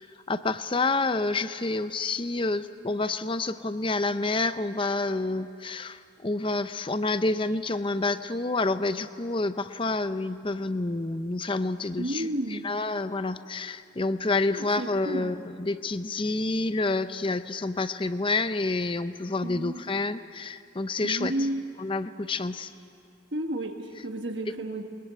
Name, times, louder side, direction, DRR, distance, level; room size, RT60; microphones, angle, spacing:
voice 1, 0.3-21.3 21.8-22.7, left 3 dB, 25° left, 12 dB, 0.6 m, -28 dB
voice 2, 12.0-12.7 14.5-15.3 19.4-19.8 21.0-21.6 23.3-24.8, right 1 dB, 60° right, 4 dB, 1.4 m, -32 dB
22.0 x 21.5 x 8.1 m, 2.5 s
head